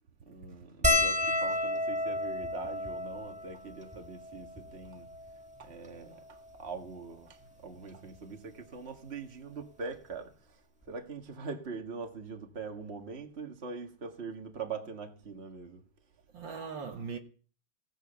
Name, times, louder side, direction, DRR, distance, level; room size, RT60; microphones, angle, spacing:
voice 1, 0.2-5.1 5.6-15.8, right 4 dB, 30° right, 1.9 m, -43 dB
sound 1, 0.8-5.4 6.2-6.3 6.5-6.7 7.9-8.2 9.6-9.7 9.9-10.1, left 1 dB, 5° right, 1.3 m, -31 dB
voice 2, 7.4-8.0 16.3-17.2, right 5 dB, 60° right, 1.9 m, -41 dB
17.0 x 9.6 x 7.0 m
omnidirectional pair, 2.4 m